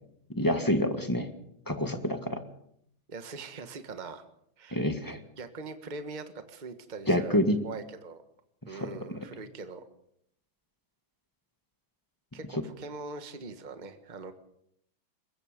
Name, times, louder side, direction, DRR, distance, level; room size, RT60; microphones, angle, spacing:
voice 1, 0.3-1.3 1.7-2.4 4.7-5.2 7.1-7.6 8.7-8.8 9.1-9.2, left 1 dB, 10° left, 7 dB, 1.6 m, -27 dB
voice 2, 3.1-4.2 4.6-4.8 5.4-8.2 8.7-9.8 12.3-14.3, right 4 dB, 25° right, 8 dB, 1.4 m, -42 dB
23.5 x 21.5 x 5.2 m, 0.73 s
omnidirectional pair, 2.2 m